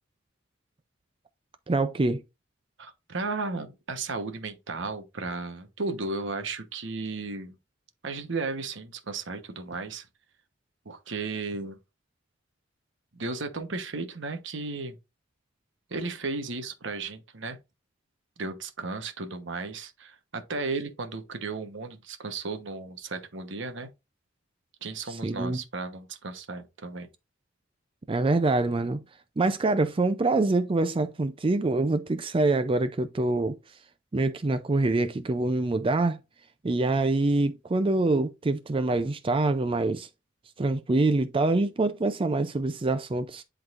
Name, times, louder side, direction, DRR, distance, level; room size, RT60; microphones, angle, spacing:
voice 1, 1.7-2.2 25.1-25.6 28.1-29.0 29.4-33.6 34.1-36.2 36.6-40.1 40.6-43.4, right 2 dB, 25° right, 0.4 m, -25 dB
voice 2, 2.8-7.6 8.0-10.1 10.8-11.8 13.1-15.0 15.9-17.6 18.4-23.9 24.8-27.1, right 3 dB, 65° right, 1.1 m, -34 dB
10.5 x 3.9 x 2.5 m
head